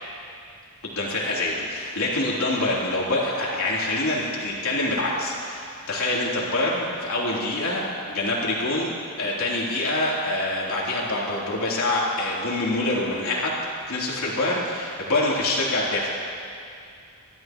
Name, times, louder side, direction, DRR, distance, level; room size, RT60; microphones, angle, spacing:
voice 1, 0.8-8.9 9.2-13.6 13.9-16.2, left 2 dB, 75° left, -5 dB, 3.6 m, -25 dB
27.5 x 13.0 x 3.1 m, 2.4 s
head